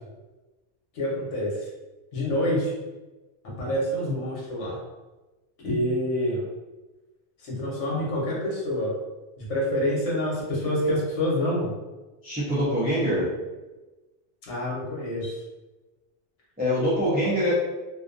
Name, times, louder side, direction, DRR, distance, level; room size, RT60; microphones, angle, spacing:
voice 1, 0.9-1.7 2.1-2.7 3.4-4.8 5.6-6.4 7.4-9.0 9.4-11.7 14.5-15.4, left 1 dB, 85° left, -4 dB, 1.1 m, -27 dB
voice 2, 12.2-13.3 16.6-17.5, equal, 15° right, -9 dB, 0.3 m, -24 dB
2.5 x 2.3 x 2.4 m, 1.1 s
omnidirectional pair, 1.2 m